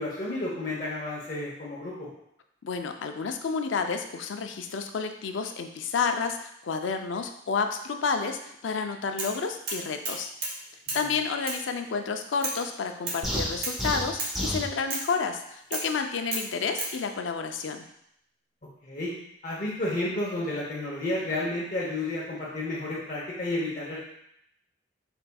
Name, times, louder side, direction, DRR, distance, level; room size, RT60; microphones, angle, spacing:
voice 1, 0.0-2.1 10.9-11.0 18.8-19.1 19.4-24.0, left 2 dB, 45° left, -5 dB, 0.8 m, -31 dB
voice 2, 2.6-10.3 10.9-17.9, left 5 dB, 85° left, 6 dB, 0.4 m, -30 dB
sound 1, 9.2-9.4 9.7-10.6 10.9-11.0 11.5-11.6 12.4-12.6 13.1-13.2 13.6-13.8 14.2-14.4 14.9-15.1 15.7-15.9 16.3-17.0, right 2 dB, 55° right, 1.1 m, -32 dB
sound 2, 13.2-14.7, equal, ahead, 0.7 m, -29 dB
4.4 x 4.1 x 2.2 m, 0.75 s
head